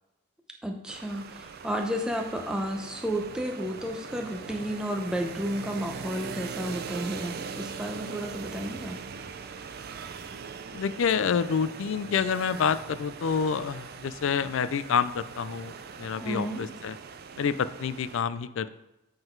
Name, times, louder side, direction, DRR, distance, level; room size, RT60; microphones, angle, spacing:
voice 1, 0.6-9.0 16.2-16.8, equal, 5° right, 2 dB, 0.6 m, -32 dB
sound 1, 0.9-18.2, right 5 dB, 45° right, 0.4 m, -41 dB
voice 2, 10.7-15.7 16.0-16.9 17.4-18.8, left 6 dB, 60° left, 14 dB, 0.3 m, -28 dB
7.8 x 3.8 x 4.5 m, 0.94 s
head